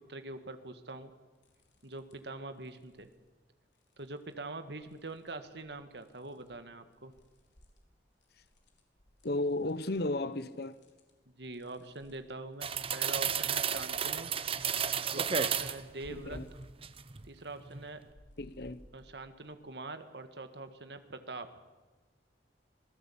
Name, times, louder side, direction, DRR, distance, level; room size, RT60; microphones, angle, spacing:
voice 1, 0.1-1.1 1.8-3.1 4.0-7.1 11.4-14.3 15.1-16.4 17.2-18.0 18.9-21.5, right 2 dB, 70° right, 1.8 m, -44 dB
sound 1, 1.3-2.3 2.6-3.2 3.7-4.3 4.7-6.6 6.9-16.8 17.1-19.5, equal, 90° left, 4.1 m, -60 dB
voice 2, 9.2-10.8 16.1-16.5 18.4-18.8, left 2 dB, 60° left, 1.1 m, -34 dB
sound 2, 12.6-15.8 16.3-17.3 17.6-17.8, right 7 dB, 30° right, 0.9 m, -33 dB
26.0 x 18.0 x 8.7 m
head